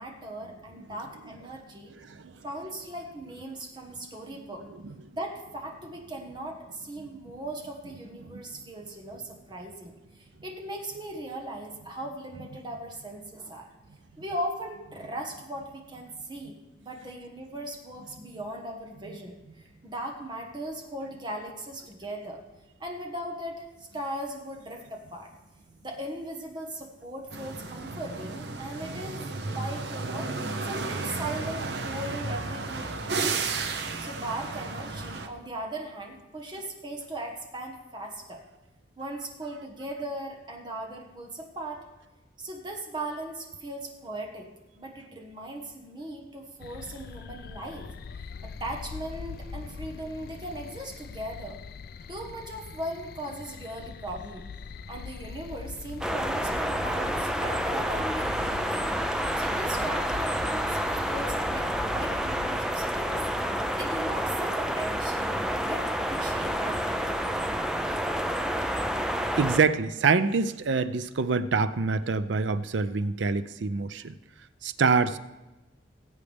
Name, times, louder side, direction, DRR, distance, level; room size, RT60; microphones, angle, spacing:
voice 1, 0.0-1.9 2.4-4.7 5.1-13.7 14.2-16.6 16.8-22.4 22.8-25.3 25.8-33.5 34.0-38.4 39.0-41.8 42.4-44.5 44.7-47.9 48.2-51.6 52.1-54.4 54.9-58.9 59.3-63.2 63.7-67.5, right 1 dB, 25° right, 1 dB, 1.4 m, -38 dB
sound 1, 27.3-35.3, right 3 dB, 65° right, 0.9 m, -33 dB
sound 2, 46.6-64.6, left 5 dB, 55° left, 0.3 m, -43 dB
sound 3, 56.0-69.6, equal, 5° right, 0.5 m, -29 dB
voice 2, 69.4-74.1 74.6-75.2, right 4 dB, 80° right, 13 dB, 0.5 m, -25 dB
19.5 x 8.2 x 3.5 m, 1.0 s
head